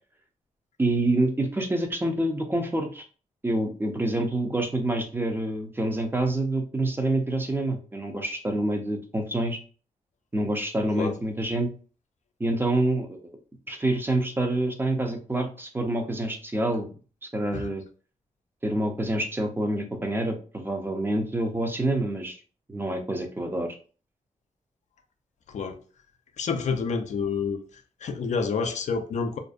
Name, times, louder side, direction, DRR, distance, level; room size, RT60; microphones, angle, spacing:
voice 1, 0.8-3.0 3.4-9.6 10.3-11.7 12.4-13.2 13.7-16.9 17.2-17.8 18.6-22.4 22.7-23.7, right 1 dB, 15° right, 0.5 m, -27 dB
voice 2, 26.4-27.6 28.0-29.4, left 5 dB, 60° left, 0.4 m, -28 dB
2.5 x 2.1 x 2.4 m
cardioid pair, 95°, 14 cm